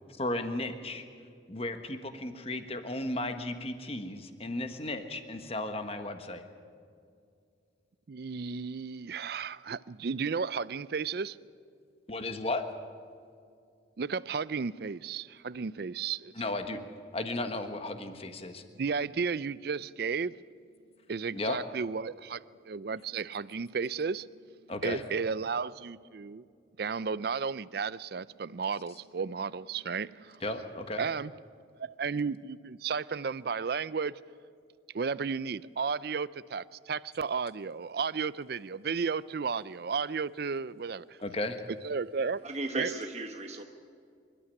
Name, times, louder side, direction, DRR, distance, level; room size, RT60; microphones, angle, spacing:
voice 1, 0.2-1.0 1.5-6.4 12.1-12.6 16.3-16.8 17.1-18.6 21.3-21.6 24.7-25.0 30.4-31.1 41.2-41.6, left 2 dB, 30° left, 1.4 m, -35 dB
voice 2, 8.1-11.4 14.0-16.5 18.8-20.4 21.1-24.3 24.8-26.4 26.8-30.4 31.0-31.3 31.8-34.2 34.9-41.2 41.8-42.4 42.7-42.9, right 5 dB, 55° right, 0.4 m, -33 dB
voice 3, 42.2-43.6, right 2 dB, 35° right, 1.1 m, -36 dB
26.5 x 12.5 x 9.9 m
head